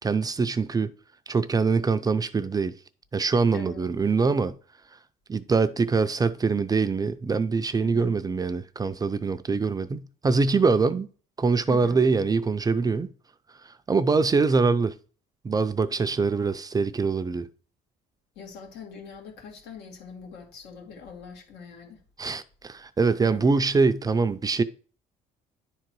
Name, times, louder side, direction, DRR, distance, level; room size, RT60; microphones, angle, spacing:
voice 1, 0.0-0.9 1.3-2.7 3.1-4.5 5.3-11.1 11.4-13.1 13.6-15.0 15.4-17.5 22.2-24.6, right 4 dB, 20° right, 0.4 m, -24 dB
voice 2, 7.8-8.1 11.7-12.0 18.4-22.0 23.2-23.7, left 5 dB, 85° left, 2.3 m, -43 dB
10.0 x 3.8 x 4.6 m
cardioid pair, 110°, 17 cm